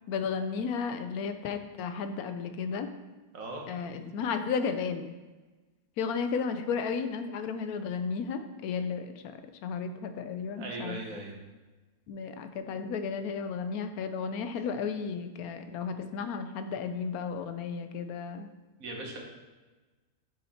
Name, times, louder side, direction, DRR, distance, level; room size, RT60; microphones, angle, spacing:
voice 1, 0.1-2.9 3.7-5.1 6.0-11.2 12.1-18.5, left 5 dB, 80° left, 8 dB, 1.1 m, -33 dB
voice 2, 10.6-11.4 18.8-19.2, right 2 dB, 70° right, 0 dB, 1.5 m, -39 dB
6.4 x 4.4 x 4.2 m, 1.2 s
omnidirectional pair, 1.5 m